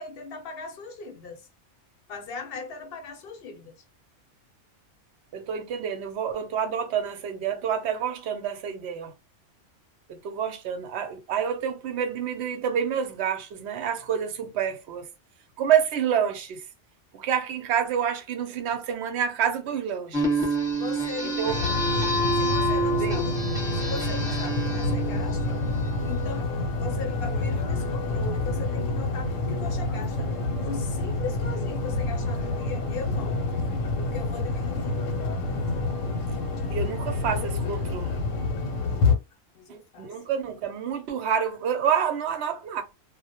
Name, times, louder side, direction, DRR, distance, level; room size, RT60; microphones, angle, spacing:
voice 1, 0.0-1.5 2.1-3.8 20.7-21.7 22.4-25.6 26.0-33.4 34.0-35.1 39.5-40.1, left 4 dB, 60° left, 0.8 m, -39 dB
voice 2, 5.3-9.1 10.1-15.1 15.6-16.7 17.1-20.3 21.2-21.6 22.9-23.2 36.7-38.2 40.0-42.8, right 8 dB, 65° right, 0.8 m, -28 dB
sound 1, 20.1-26.2, right 1 dB, 5° right, 0.9 m, -28 dB
sound 2, 21.5-39.2, left 2 dB, 85° left, 1.0 m, -28 dB
2.1 x 2.1 x 2.8 m
omnidirectional pair, 1.3 m